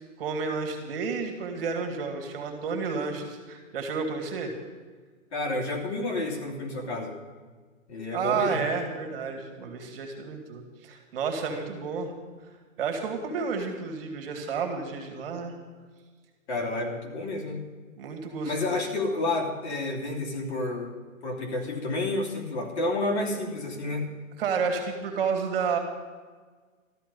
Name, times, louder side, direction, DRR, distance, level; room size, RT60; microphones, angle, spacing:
voice 1, 0.2-4.5 8.1-12.1 12.8-15.5 18.0-18.5 24.4-25.8, right 5 dB, 45° right, 4 dB, 2.3 m, -31 dB
voice 2, 5.3-7.2 7.9-8.6 11.5-11.6 16.5-17.6 18.4-20.9 21.2-24.1, left 2 dB, 55° left, 1 dB, 3.0 m, -30 dB
13.5 x 13.0 x 5.4 m, 1.4 s
hypercardioid pair, 160°, 41 cm